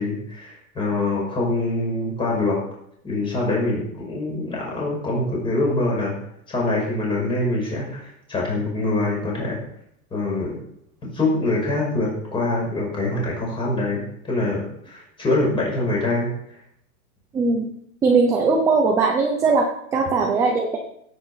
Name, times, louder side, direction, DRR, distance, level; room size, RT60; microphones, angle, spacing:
voice 1, 0.0-2.6 3.0-6.1 6.5-9.6 10.1-10.6 11.0-16.3, left 2 dB, 10° left, -3 dB, 5.6 m, -24 dB
voice 2, 17.3-17.7 18.0-20.8, right 4 dB, 5° right, 1 dB, 0.6 m, -19 dB
17.0 x 9.1 x 5.7 m, 0.73 s
supercardioid pair, 180°, 43 cm